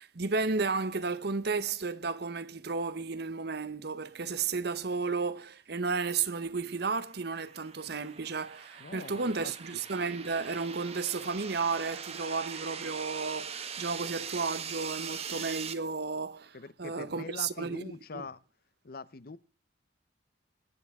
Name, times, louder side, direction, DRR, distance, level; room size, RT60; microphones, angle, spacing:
voice 1, 0.0-18.3, right 4 dB, 60° right, 0.9 m, -33 dB
sound 1, 6.8-15.7, right 7 dB, 35° right, 1.1 m, -42 dB
voice 2, 8.8-9.5 16.5-18.4 18.8-19.4, left 4 dB, 55° left, 0.7 m, -43 dB
22.0 x 9.5 x 3.6 m
head